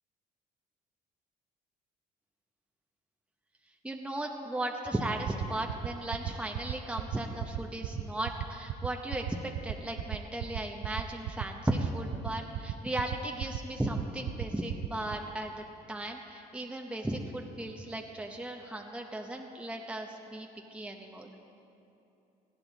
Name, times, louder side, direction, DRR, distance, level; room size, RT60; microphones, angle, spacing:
voice 1, 3.8-9.2 9.6-15.5 15.9-21.3, right 1 dB, 5° right, 2 dB, 1.0 m, -36 dB
sound 1, 5.2-15.1, right 14 dB, 70° right, 0.6 m, -34 dB
18.5 x 14.5 x 4.1 m, 2.8 s
cardioid pair, 110°, 17 cm